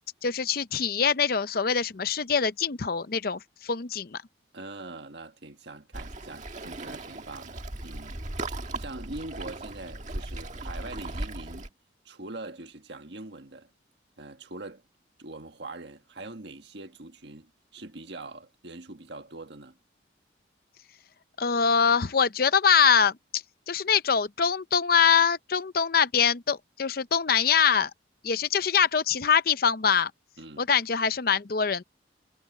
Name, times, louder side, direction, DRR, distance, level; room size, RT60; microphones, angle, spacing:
voice 1, 0.2-4.2 21.4-27.9 28.2-30.1 30.6-31.8, left 6 dB, 50° left, 0.6 m, -24 dB
voice 2, 4.5-11.7 12.0-13.7 14.2-14.8 15.2-19.8 30.4-30.7, right 2 dB, 65° right, 1.6 m, -43 dB
Waves surf, 5.9-11.7, right 2 dB, 40° right, 1.7 m, -37 dB
head